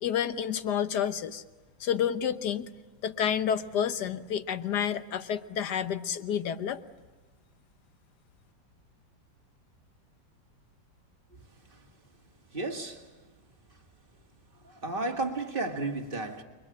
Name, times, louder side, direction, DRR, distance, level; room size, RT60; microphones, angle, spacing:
voice 1, 0.0-1.4 1.8-2.7 3.0-6.8, left 8 dB, 65° left, 1.6 m, -29 dB
voice 2, 12.5-13.1 14.6-16.4, right 2 dB, 30° right, 2.1 m, -33 dB
29.5 x 23.0 x 8.6 m
omnidirectional pair, 2.0 m